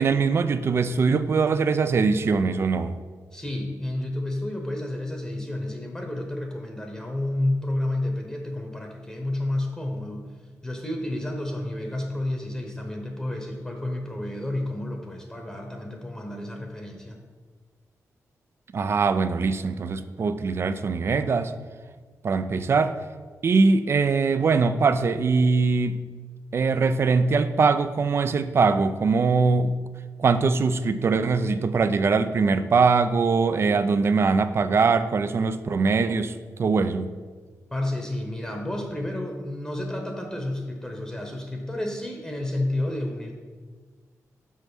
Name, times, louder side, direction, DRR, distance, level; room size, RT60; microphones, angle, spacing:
voice 1, 0.0-2.9 18.7-21.5 22.2-23.0 23.4-26.0 26.5-29.7 30.2-37.1, right 4 dB, 45° right, 12 dB, 0.4 m, -22 dB
voice 2, 3.3-10.3 10.6-17.2 37.7-43.3, left 1 dB, 10° left, 2 dB, 0.9 m, -30 dB
6.1 x 5.5 x 6.1 m, 1.5 s
wide cardioid pair, 115°, 6 cm